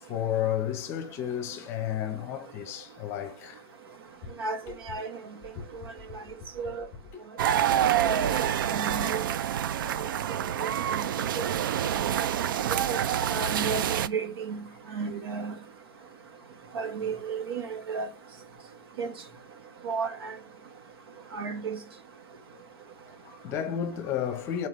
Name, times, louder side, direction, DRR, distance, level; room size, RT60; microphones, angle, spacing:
voice 1, 0.1-3.6 4.2-4.4 5.6-5.7 6.2-6.3 6.6-6.7 7.1-7.2 7.5-7.9 23.2-24.7, left 9 dB, 20° left, 0.7 m, -32 dB
sound 1, 7.4-14.1, right 10 dB, 60° right, 0.4 m, -27 dB
voice 2, 8.7-9.4 10.0-10.1 10.5-11.1 11.4-11.5 12.7-13.0 13.3-14.6 14.9-15.5 16.7-18.1 19.0-19.1 19.8-20.3 21.3-21.8, right 5 dB, 85° right, 1.7 m, -33 dB
8.4 x 4.4 x 3.1 m
supercardioid pair, 175°, 12 cm